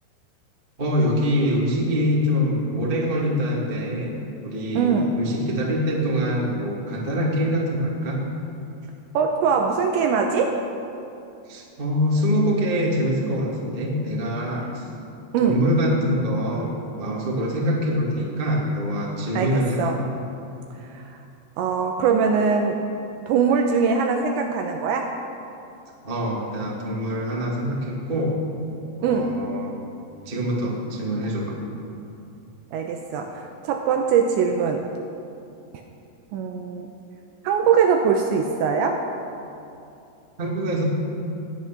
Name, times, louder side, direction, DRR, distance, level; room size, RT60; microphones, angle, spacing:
voice 1, 0.8-4.2 4.4-8.2 11.4-14.9 15.4-20.0 26.0-28.4 29.0-29.7 30.2-31.6 40.4-40.8, equal, 40° right, -3 dB, 0.7 m, -24 dB
voice 2, 4.8-5.1 9.1-10.6 15.3-15.6 19.4-20.0 20.9-21.0 21.6-22.8 23.3-25.1 29.0-29.4 32.7-34.8 36.3-36.9 37.4-39.0, right 6 dB, 80° right, 3 dB, 2.7 m, -22 dB
20.0 x 9.2 x 6.1 m, 2.7 s
omnidirectional pair, 5.9 m